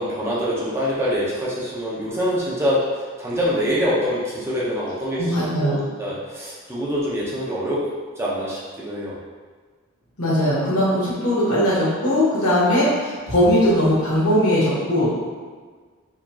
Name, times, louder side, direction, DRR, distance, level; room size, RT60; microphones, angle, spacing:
voice 1, 0.0-7.9 8.2-9.2, equal, 10° right, -7 dB, 0.6 m, -25 dB
voice 2, 5.2-5.8 10.2-15.1, equal, 85° left, -8 dB, 1.4 m, -19 dB
4.5 x 2.8 x 2.3 m, 1.5 s
head